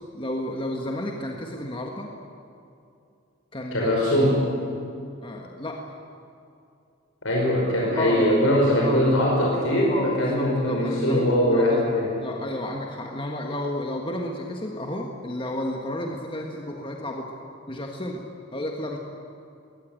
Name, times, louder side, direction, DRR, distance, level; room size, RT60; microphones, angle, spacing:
voice 1, 0.1-2.1 3.5-3.9 5.2-5.9 8.0-8.3 8.8-9.0 9.9-11.9 12.2-17.3 17.7-18.2 18.5-19.0, left 1 dB, 25° left, 1 dB, 1.6 m, -32 dB
voice 2, 3.7-4.5 7.2-12.2, equal, 85° left, -3 dB, 5.3 m, -21 dB
21.5 x 19.5 x 9.1 m, 2.5 s
head